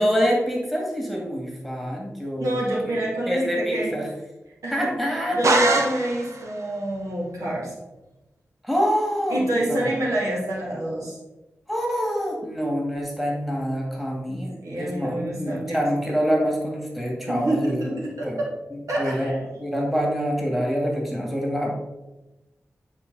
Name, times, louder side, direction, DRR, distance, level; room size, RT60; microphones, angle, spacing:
voice 1, 0.0-2.6 2.9-3.0 3.3-4.1 4.7-5.6 8.6-10.0 11.7-17.9 18.2-18.4 18.7-21.7, equal, ahead, -1 dB, 2.1 m, -26 dB
voice 2, 2.4-3.9 4.6-4.9 5.3-7.7 9.3-11.2 14.3-15.8 17.3-18.5 18.9-19.4, right 1 dB, 85° right, -4 dB, 2.5 m, -27 dB
sound 1, 5.4-6.5, right 2 dB, 70° right, 1.0 m, -22 dB
9.1 x 4.5 x 4.1 m, 1.0 s
cardioid pair, 55°, 5 cm